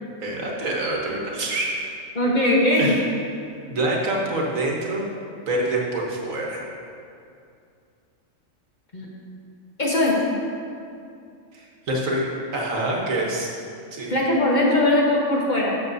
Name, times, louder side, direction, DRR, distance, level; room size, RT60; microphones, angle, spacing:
voice 1, 0.2-1.8 2.8-3.0 3.7-5.1 5.5-6.6 11.5-12.2 12.5-13.5 13.9-14.1, right 1 dB, 75° right, -2 dB, 1.6 m, -26 dB
voice 2, 2.1-3.0 8.9-9.1 9.8-10.2 14.1-15.7, left 1 dB, 35° left, -4 dB, 1.2 m, -20 dB
13.0 x 6.4 x 2.7 m, 2.5 s
omnidirectional pair, 1.4 m